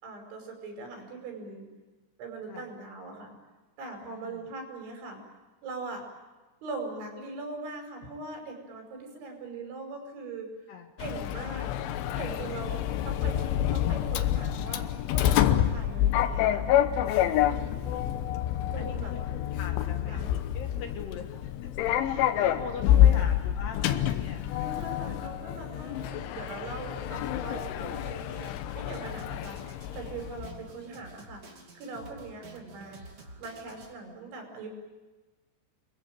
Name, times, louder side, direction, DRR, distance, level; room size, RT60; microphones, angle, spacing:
voice 1, 0.0-1.7 2.2-3.4 3.8-5.2 5.6-6.0 6.6-10.5 11.0-11.7 12.1-12.8 13.1-13.4 13.7-14.9 15.1-16.7 17.3-17.8 18.7-19.1 20.1-20.3 22.4-22.6 22.9-23.3 23.9-24.1 24.6-28.5 28.7-31.4 31.7-33.0 33.4-34.7, right 3 dB, 75° right, 3 dB, 7.7 m, -41 dB
voice 2, 4.1-4.5 10.7-10.9 12.9-13.0 18.7-19.2 19.5-21.7 22.0-24.4 29.2-29.6, left 6 dB, 65° left, 4 dB, 3.3 m, -42 dB
Sliding door, 11.0-30.6, left 11 dB, 85° left, 3.6 m, -27 dB
Drum kit, 27.9-33.9, right 3 dB, 35° right, 2.9 m, -50 dB
28.5 x 22.0 x 9.0 m, 1.2 s
omnidirectional pair, 5.4 m